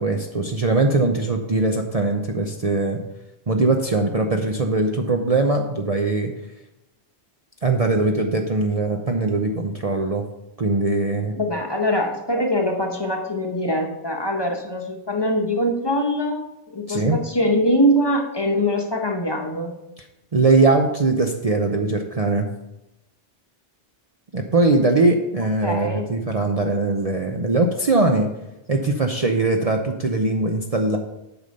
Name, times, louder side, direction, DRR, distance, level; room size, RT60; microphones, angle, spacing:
voice 1, 0.0-3.0 3.5-6.3 7.6-10.2 10.6-11.4 16.9-17.2 20.3-22.5 24.3-28.3 28.7-31.0, right 3 dB, 40° right, 3 dB, 0.7 m, -21 dB
voice 2, 11.4-16.4 16.7-19.8 25.6-26.1, equal, 25° left, 2 dB, 1.1 m, -23 dB
8.3 x 5.5 x 6.6 m, 0.92 s
omnidirectional pair, 1.2 m